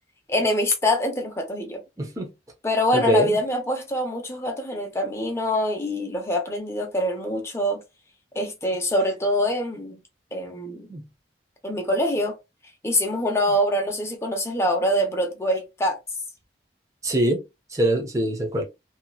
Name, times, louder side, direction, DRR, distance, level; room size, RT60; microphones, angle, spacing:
voice 1, 0.3-1.8 2.6-7.8 8.3-10.0 10.3-10.9 11.6-12.4 12.8-16.0, left 1 dB, 15° left, 0.8 m, -24 dB
voice 2, 2.0-2.3 2.9-3.4 10.9-11.0 17.0-17.4 17.7-18.6, right 1 dB, 20° right, 0.8 m, -23 dB
2.9 x 2.9 x 2.3 m
head